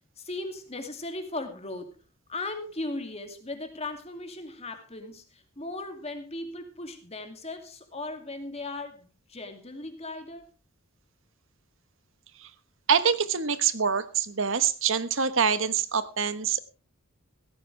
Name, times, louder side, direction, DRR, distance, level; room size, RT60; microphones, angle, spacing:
voice 1, 0.2-2.0 2.3-10.5, left 2 dB, 30° left, 7 dB, 2.5 m, -37 dB
voice 2, 12.9-16.6, right 6 dB, 60° right, 12 dB, 1.2 m, -25 dB
16.5 x 14.5 x 3.4 m, 0.32 s
head